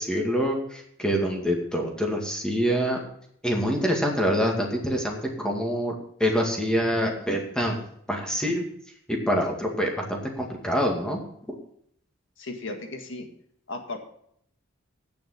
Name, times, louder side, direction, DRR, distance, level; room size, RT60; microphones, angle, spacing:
voice 1, 0.0-3.0 3.4-5.9 6.2-7.8 8.1-8.6 9.1-11.2, equal, 5° left, 0 dB, 2.1 m, -25 dB
voice 2, 12.4-13.3 13.7-14.0, left 2 dB, 65° left, 4 dB, 1.8 m, -35 dB
9.3 x 7.0 x 7.2 m, 0.69 s
head